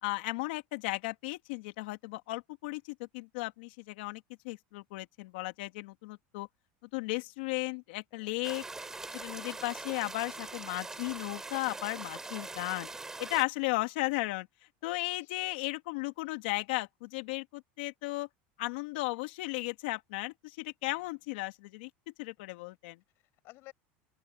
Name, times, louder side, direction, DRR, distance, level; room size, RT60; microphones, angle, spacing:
voice 1, 0.0-2.8 3.1-6.5 6.9-8.6 9.1-12.9 13.2-14.5 14.8-18.3 18.6-21.9 22.2-23.0, left 22 dB, 80° left, 2.5 m, -35 dB
voice 2, 8.1-8.7 14.8-15.6 21.0-21.1 23.1-23.7, left 19 dB, 50° left, 6.8 m, -57 dB
sound 1, 8.4-13.4, right 3 dB, 10° right, 3.9 m, -42 dB
open air
supercardioid pair, 155°, 5 cm